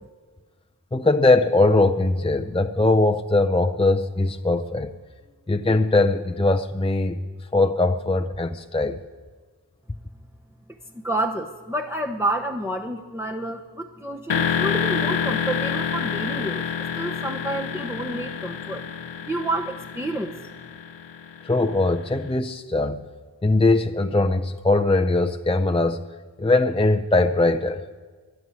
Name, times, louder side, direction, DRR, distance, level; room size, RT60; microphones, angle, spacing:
voice 1, 0.9-4.9 5.5-7.2 7.5-9.0 21.4-23.0 23.4-26.0 26.4-27.8, left 2 dB, 15° left, 5 dB, 0.5 m, -21 dB
voice 2, 11.0-16.6 16.9-18.8 19.3-20.3, right 1 dB, 5° right, 1 dB, 0.9 m, -29 dB
sound 1, 14.3-22.1, left 7 dB, 80° left, 0.7 m, -28 dB
12.5 x 11.0 x 9.6 m, 1.5 s
wide cardioid pair, 40°, 43 cm